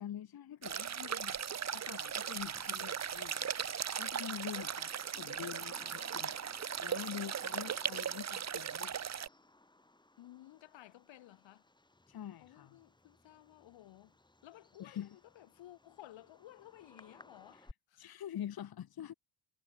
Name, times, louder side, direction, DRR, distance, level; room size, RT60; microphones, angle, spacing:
voice 1, 0.0-1.4 1.7-6.4 6.8-9.0 12.1-12.8 14.8-15.1 17.5-17.7 18.0-19.1, left 10 dB, 45° left, 4.4 m, -45 dB
sound 1, 0.6-9.3, right 8 dB, 35° right, 2.2 m, -38 dB
Bird vocalization bird call bird song, 0.7-17.7, left 2 dB, 10° left, 4.7 m, -60 dB
voice 2, 10.2-11.7 12.4-14.2 14.4-18.1, left 14 dB, 65° left, 6.1 m, -56 dB
cardioid pair, 120°, 48 cm